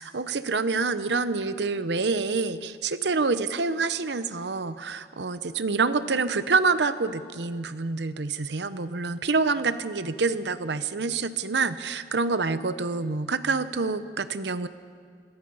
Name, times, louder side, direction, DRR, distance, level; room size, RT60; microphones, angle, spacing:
voice 1, 0.0-14.7, right 4 dB, 75° right, 13 dB, 0.8 m, -27 dB
25.5 x 18.5 x 5.6 m, 2.1 s
head